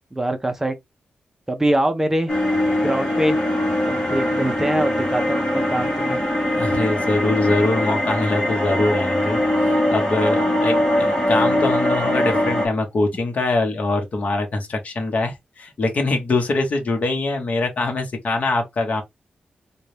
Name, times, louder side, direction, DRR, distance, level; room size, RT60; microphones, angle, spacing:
voice 1, 0.1-0.7 1.5-2.3 2.8-3.4 3.8-6.2, right 1 dB, 10° right, 0.5 m, -23 dB
sound 1, 2.3-12.7, left 1 dB, 20° left, 1.2 m, -21 dB
voice 2, 6.5-19.0, left 2 dB, 45° left, 0.9 m, -23 dB
3.9 x 2.2 x 3.2 m
wide cardioid pair, 160°, 3 cm